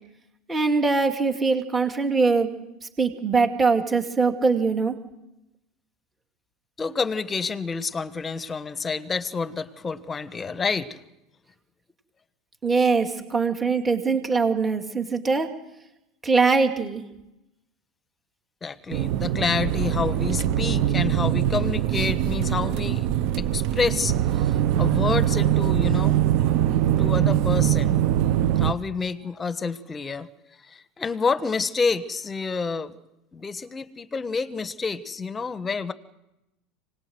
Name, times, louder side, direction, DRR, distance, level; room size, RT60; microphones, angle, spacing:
voice 1, 0.5-2.5 3.0-5.0 12.6-15.5 16.2-17.0, right 4 dB, 15° right, 5 dB, 2.5 m, -22 dB
voice 2, 6.8-11.0 18.6-23.1 23.4-26.2 26.8-28.0 28.6-30.3 30.7-33.0 33.3-35.9, left 4 dB, 20° left, 12 dB, 1.3 m, -28 dB
sound 1, 18.9-28.7, right 11 dB, 60° right, 0.8 m, -22 dB
25.5 x 19.5 x 7.9 m, 0.90 s
supercardioid pair, 135°, 0 cm